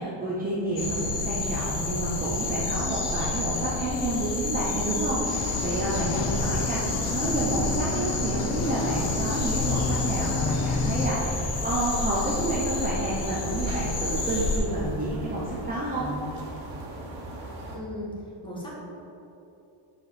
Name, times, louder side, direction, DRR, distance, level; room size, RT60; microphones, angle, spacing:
voice 1, 0.0-6.8 7.1-16.1, right 1 dB, 20° right, -6 dB, 0.8 m, -29 dB
sound 1, 0.8-14.6, left 3 dB, 45° left, 1.2 m, -30 dB
sound 2, 5.2-11.1, left 4 dB, 90° left, 0.8 m, -30 dB
sound 3, 5.4-17.8, right 2 dB, 65° right, 1.6 m, -39 dB
voice 2, 6.3-7.1 15.9-16.4 17.6-18.1 18.4-18.7, equal, 10° left, -5 dB, 1.5 m, -38 dB
8.0 x 5.1 x 4.9 m, 2.9 s
cardioid pair, 170°, 50 cm